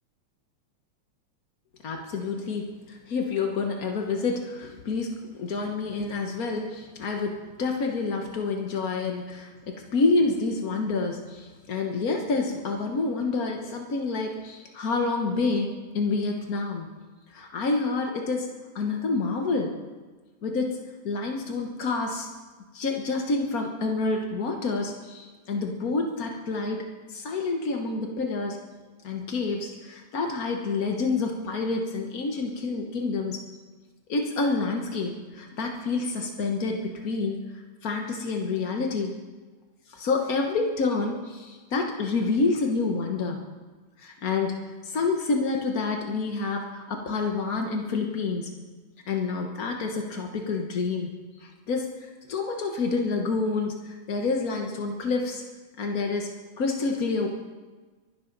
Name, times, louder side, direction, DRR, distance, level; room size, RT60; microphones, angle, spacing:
voice 1, 1.8-5.1 5.4-16.9 17.3-18.5 18.7-19.7 20.4-20.8 21.0-22.3 22.7-26.8 27.1-28.6 29.0-33.4 34.1-37.4 37.8-39.1 39.9-43.4 44.0-44.5 44.8-48.5 49.1-51.1 51.4-55.4 55.8-56.3 56.6-57.3, left 3 dB, 60° left, 2 dB, 0.9 m, -28 dB
24.0 x 11.5 x 4.0 m, 1.3 s
omnidirectional pair, 3.3 m